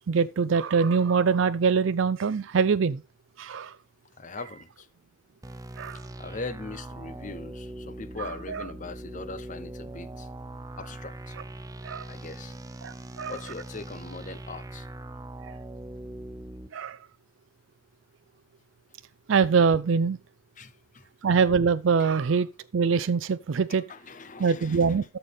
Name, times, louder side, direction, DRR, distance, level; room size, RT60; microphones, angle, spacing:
voice 1, 0.1-3.0 3.4-3.7 5.8-6.0 8.5-8.6 11.8-12.0 12.8-13.4 16.7-17.0 19.3-20.2 21.2-23.8 24.4-25.0, right 5 dB, 70° right, 0.4 m, -23 dB
voice 2, 4.2-4.9 6.2-10.3 10.8-11.4 12.1-12.5 13.3-14.9 20.6-21.1 22.0-22.1 23.7-25.0, left 3 dB, 40° left, 0.8 m, -41 dB
sound 1, 5.4-16.7, right 1 dB, 15° right, 0.7 m, -41 dB
13.0 x 6.7 x 3.4 m
head